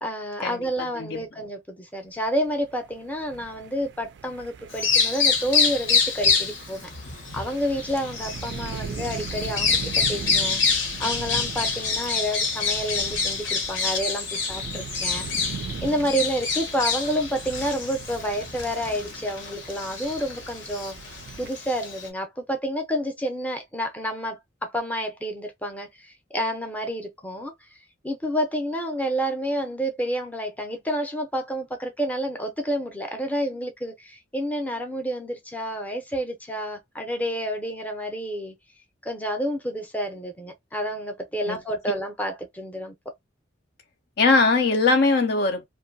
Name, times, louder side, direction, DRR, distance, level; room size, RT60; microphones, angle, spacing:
voice 1, 0.0-6.8 7.3-21.0 21.4-27.7 28.0-38.5 39.0-43.1, equal, 10° left, 0.6 m, -29 dB
sound 1, 2.4-21.5, right 5 dB, 55° right, 0.3 m, -40 dB
Bird vocalization bird call bird song, 4.7-22.1, left 5 dB, 70° left, 0.9 m, -27 dB
voice 2, 44.2-45.7, left 3 dB, 55° left, 0.4 m, -20 dB
2.7 x 2.3 x 2.6 m
head